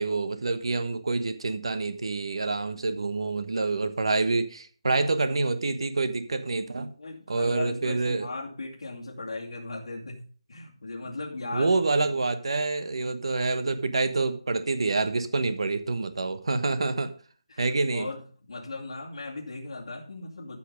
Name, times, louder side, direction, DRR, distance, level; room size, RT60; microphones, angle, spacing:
voice 1, 0.0-6.9 7.3-8.3 11.5-17.1 17.6-18.1, right 3 dB, 60° right, 10 dB, 1.4 m, -27 dB
voice 2, 7.0-11.7 17.5-20.6, left 2 dB, 60° left, -6 dB, 2.5 m, -38 dB
13.5 x 5.8 x 5.3 m, 0.41 s
hypercardioid pair, 175°, 3 cm